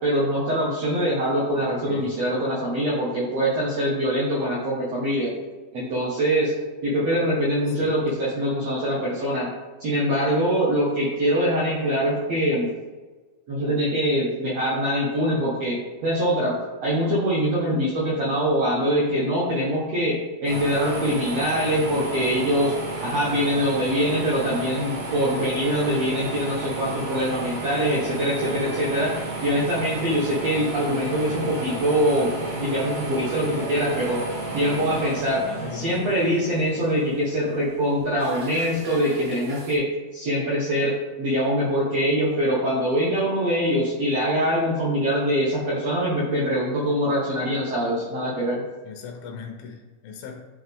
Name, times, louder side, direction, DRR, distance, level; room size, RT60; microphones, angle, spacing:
voice 1, 0.0-5.3 5.7-6.5 6.8-9.5 9.8-12.7 13.5-16.6 16.8-22.7 23.0-29.1 29.4-34.2 34.5-48.6, equal, 70° right, -6 dB, 1.6 m, -23 dB
sound 1, 20.5-39.7, right 2 dB, 55° right, 2.1 m, -33 dB
sound 2, 30.9-31.8 32.5-35.0 35.3-36.4 36.7-36.8 37.1-37.4, right 1 dB, 90° right, 1.0 m, -40 dB
voice 2, 35.6-35.9 48.8-50.4, left 6 dB, 75° left, 2 dB, 2.7 m, -39 dB
11.0 x 3.9 x 3.6 m, 1.3 s
omnidirectional pair, 4.7 m